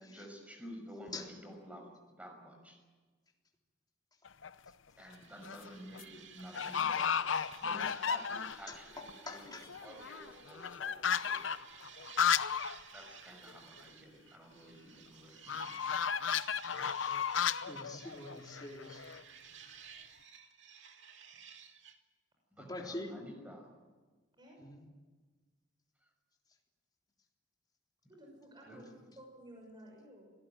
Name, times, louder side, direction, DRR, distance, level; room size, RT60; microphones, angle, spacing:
voice 1, 0.0-2.8 5.0-7.2 7.6-9.5 9.8-11.4 12.9-15.9 22.5-23.7 28.7-28.9, equal, 5° right, 3 dB, 6.1 m, -51 dB
sound 1, 4.3-4.7 5.2-5.7 5.9-6.0 6.5-8.7 9.1-9.2 9.4-12.8 13.1-13.2 13.5-13.6 15.5-19.2, left 7 dB, 80° left, 0.8 m, -34 dB
sound 2, 5.1-10.8 11.1-22.0, right 7 dB, 65° right, 2.3 m, -56 dB
voice 2, 8.7-9.8 10.1-10.3 15.7-15.8 17.7-19.0 22.6-23.3 24.6-24.8, left 2 dB, 20° left, 0 dB, 3.6 m, -45 dB
voice 3, 28.1-30.3, right 1 dB, 25° right, 0 dB, 5.8 m, -54 dB
26.0 x 18.0 x 9.2 m, 1.3 s
head